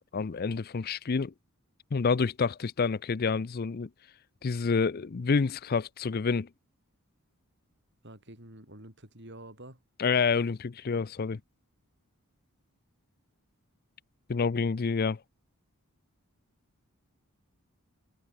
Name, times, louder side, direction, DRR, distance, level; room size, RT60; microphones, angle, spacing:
voice 1, 0.1-1.3 1.9-3.9 4.4-6.5 10.0-11.4 14.3-15.2, left 5 dB, 45° left, 0.5 m, -28 dB
voice 2, 8.0-9.8, right 1 dB, 50° right, 7.5 m, -48 dB
head